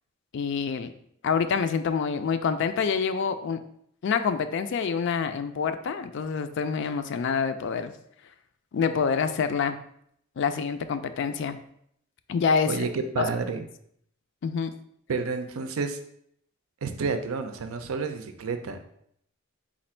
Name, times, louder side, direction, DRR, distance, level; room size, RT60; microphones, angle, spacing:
voice 1, 0.3-0.9 1.2-3.6 4.0-7.9 8.7-9.8 10.4-11.6 12.3-12.8 13.2-13.3 14.4-14.7, left 6 dB, 60° left, 10 dB, 0.3 m, -26 dB
voice 2, 12.7-13.6 15.1-16.0 16.8-18.9, right 4 dB, 85° right, 7 dB, 0.5 m, -30 dB
4.2 x 2.5 x 4.3 m, 0.70 s
head